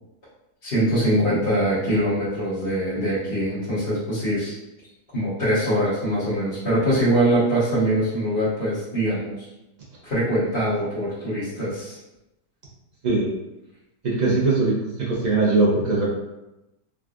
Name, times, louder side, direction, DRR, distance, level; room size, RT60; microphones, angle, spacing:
voice 1, 0.6-4.5 5.1-9.3 10.0-12.0, right 1 dB, 35° left, -14 dB, 1.2 m, -23 dB
voice 2, 14.0-16.1, right 3 dB, 80° right, -6 dB, 0.4 m, -21 dB
3.8 x 2.4 x 2.4 m, 0.95 s
omnidirectional pair, 1.9 m